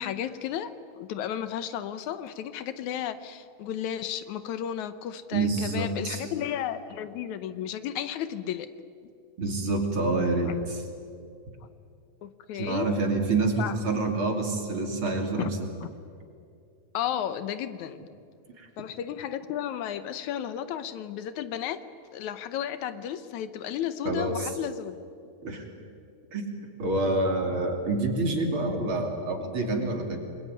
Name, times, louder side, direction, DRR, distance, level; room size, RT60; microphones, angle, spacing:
voice 1, 0.0-8.7 10.5-10.6 12.2-12.9 13.6-13.8 15.4-15.5 15.8-15.9 16.9-18.0 18.8-21.8 22.1-25.0, left 10 dB, 75° left, 12 dB, 2.2 m, -33 dB
voice 2, 5.3-6.3 9.4-10.8 12.5-15.7 18.6-18.7 24.1-24.5 25.4-25.7 26.3-30.2, right 2 dB, 45° right, 4 dB, 3.4 m, -27 dB
28.0 x 21.0 x 9.7 m, 2.4 s
omnidirectional pair, 3.5 m